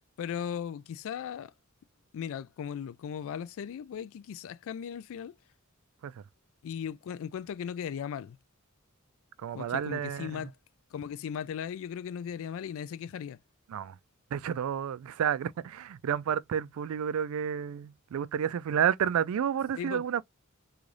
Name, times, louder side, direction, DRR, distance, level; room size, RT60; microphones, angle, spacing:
voice 1, 0.2-1.5 2.1-5.4 6.6-8.4 9.5-10.5 10.9-13.4 19.8-20.0, left 8 dB, 65° left, 0.3 m, -37 dB
voice 2, 9.4-10.5 13.7-14.0 14.3-20.2, right 8 dB, 75° right, 0.3 m, -30 dB
3.8 x 2.3 x 3.2 m
head